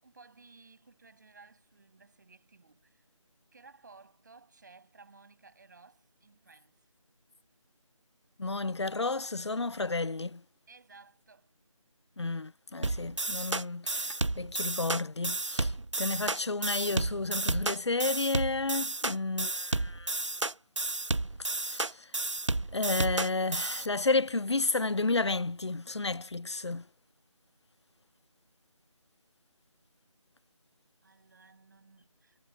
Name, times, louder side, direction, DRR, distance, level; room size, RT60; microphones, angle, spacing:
voice 1, 0.0-3.0 3.5-6.9 10.7-11.5 15.6-16.1 31.0-32.4, right 4 dB, 35° right, 7.1 m, -57 dB
voice 2, 8.4-10.4 12.2-20.1 21.7-22.1 22.7-26.8, left 3 dB, 55° left, 0.6 m, -32 dB
sound 1, 12.8-23.9, right 2 dB, 60° right, 1.2 m, -32 dB
figure-of-eight pair, 165°, 17 cm